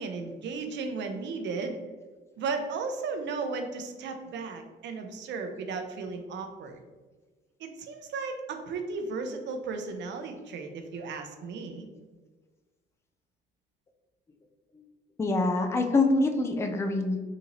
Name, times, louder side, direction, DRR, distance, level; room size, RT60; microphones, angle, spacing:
voice 1, 0.0-1.8 2.4-6.8 7.6-11.9, right 4 dB, 65° right, 5 dB, 0.5 m, -35 dB
voice 2, 15.2-17.2, left 2 dB, 15° left, 5 dB, 0.3 m, -25 dB
3.9 x 2.7 x 2.9 m, 1.3 s
cardioid pair, 130°, 20 cm